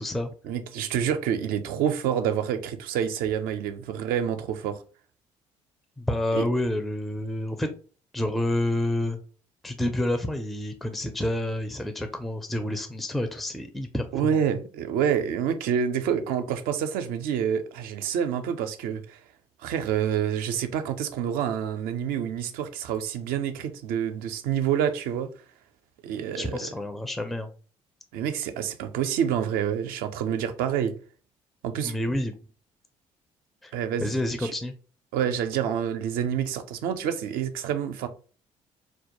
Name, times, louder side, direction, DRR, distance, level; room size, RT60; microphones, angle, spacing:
voice 1, 0.4-4.8 6.3-6.4 14.1-19.2 19.6-25.3 26.0-26.7 28.1-30.9 31.6-32.0 33.7-34.5 35.1-38.1, right 8 dB, 70° right, 0.4 m, -27 dB
voice 2, 6.0-7.7 8.1-9.2 9.6-14.4 26.4-27.5 31.8-32.3 33.6-33.7 34.0-34.7, left 1 dB, ahead, 0.4 m, -28 dB
2.2 x 2.1 x 2.9 m
hypercardioid pair, 50°, 16 cm